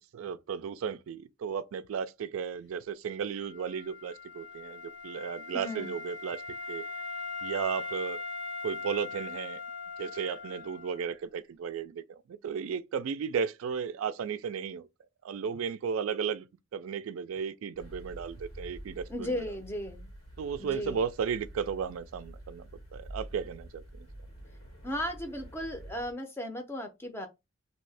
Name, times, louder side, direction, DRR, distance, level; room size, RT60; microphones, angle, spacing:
voice 1, 0.1-6.4 6.7-6.8 7.4-8.2 8.6-9.6 10.0-12.2 12.4-14.9 15.2-16.5 16.7-19.4 20.4-23.8, right 7 dB, 75° right, 0.3 m, -34 dB
Wind instrument woodwind instrument, 3.4-11.1, left 3 dB, 55° left, 0.7 m, -40 dB
voice 2, 5.5-5.9 19.1-20.1 20.6-21.0 24.8-27.3, left 1 dB, 10° left, 0.5 m, -36 dB
sound 1, 17.7-26.1, right 1 dB, 90° left, 1.6 m, -47 dB
2.7 x 2.6 x 3.2 m
head